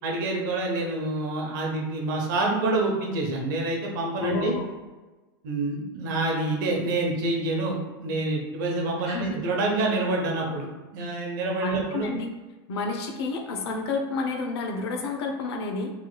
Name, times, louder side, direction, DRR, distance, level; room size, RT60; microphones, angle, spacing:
voice 1, 0.0-4.6 5.4-10.7 10.9-12.1, right 2 dB, 50° right, 0 dB, 0.7 m, -27 dB
voice 2, 4.2-4.7 9.0-9.4 11.6-12.3 12.7-15.9, left 3 dB, 80° left, 3 dB, 0.6 m, -30 dB
3.2 x 3.1 x 2.2 m, 1.2 s
supercardioid pair, 175°, 13 cm